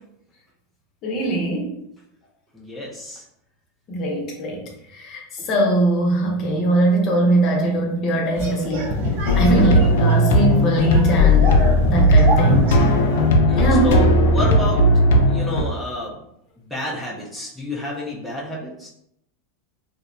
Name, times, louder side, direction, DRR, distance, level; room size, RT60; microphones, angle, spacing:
voice 1, 1.0-1.8 3.9-4.6 4.9-9.1 9.4-12.9 13.5-13.9, right 2 dB, 40° left, 0 dB, 0.6 m, -21 dB
voice 2, 2.5-3.2 13.5-14.8 15.3-16.1 16.7-18.9, left 1 dB, ahead, -5 dB, 0.4 m, -29 dB
sound 1, 8.3-13.3, equal, 70° right, 0.6 m, -25 dB
sound 2, 9.3-15.6, left 1 dB, 80° left, 0.4 m, -16 dB
2.7 x 2.1 x 2.4 m, 0.76 s
supercardioid pair, 145°, 0 cm